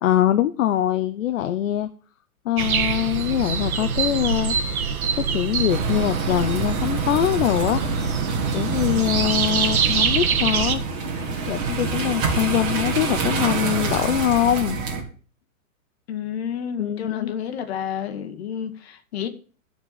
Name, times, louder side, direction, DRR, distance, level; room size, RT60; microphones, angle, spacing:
voice 1, 0.0-1.9 2.4-4.6 5.2-7.8 8.5-10.8 11.5-14.8 16.8-17.3, left 12 dB, 65° left, 0.7 m, -23 dB
sound 1, 2.6-10.7, right 6 dB, 90° right, 1.5 m, -25 dB
sound 2, 5.7-15.0, right 4 dB, 25° right, 2.2 m, -27 dB
voice 2, 16.1-19.3, left 9 dB, 45° left, 1.4 m, -30 dB
12.0 x 4.5 x 7.1 m
hypercardioid pair, 165°, 42 cm